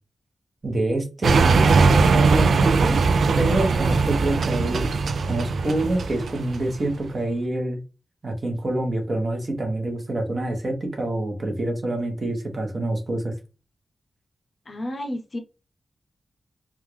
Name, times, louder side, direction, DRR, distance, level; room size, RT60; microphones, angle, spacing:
voice 1, 0.6-3.0 3.4-4.9 5.2-7.8 8.2-13.3, right 1 dB, 40° right, 3 dB, 1.1 m, -26 dB
sound 1, 1.2-6.9, right 4 dB, 90° right, 0.3 m, -20 dB
voice 2, 14.7-15.4, left 1 dB, 35° left, 5 dB, 0.6 m, -31 dB
3.6 x 2.4 x 3.1 m, 0.30 s
wide cardioid pair, 165°, 0 cm